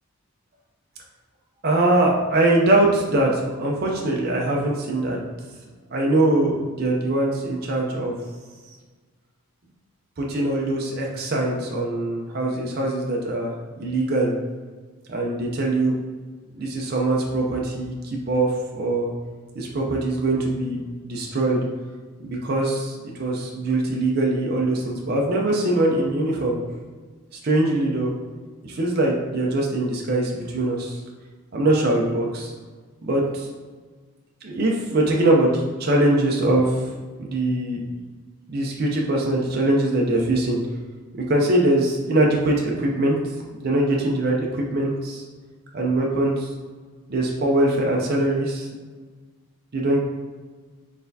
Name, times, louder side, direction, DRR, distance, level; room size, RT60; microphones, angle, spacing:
voice 1, 1.6-5.2 5.9-8.1 10.2-13.5 13.8-14.3 15.1-16.0 16.5-19.1 19.6-21.7 22.2-26.6 27.4-28.1 28.6-31.0 31.5-32.5 33.0-33.5 34.4-36.8 37.2-37.8 38.5-40.6 41.3-43.2 43.6-45.2 45.7-46.5 47.1-48.7 49.7-50.0, right 1 dB, 45° right, -1 dB, 0.5 m, -22 dB
4.1 x 3.4 x 2.6 m, 1.4 s
head